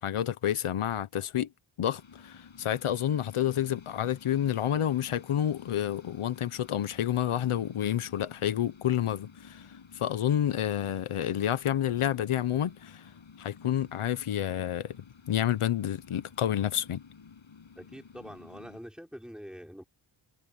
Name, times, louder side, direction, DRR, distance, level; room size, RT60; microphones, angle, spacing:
voice 1, 0.0-1.5 1.8-9.7 9.9-13.1 13.4-15.0 15.3-17.0, left 10 dB, 85° left, 1.0 m, -29 dB
sound 1, 1.9-18.8, left 6 dB, 65° left, 7.8 m, -52 dB
voice 2, 17.7-19.8, equal, ahead, 4.8 m, -45 dB
wide cardioid pair, 100°, 49 cm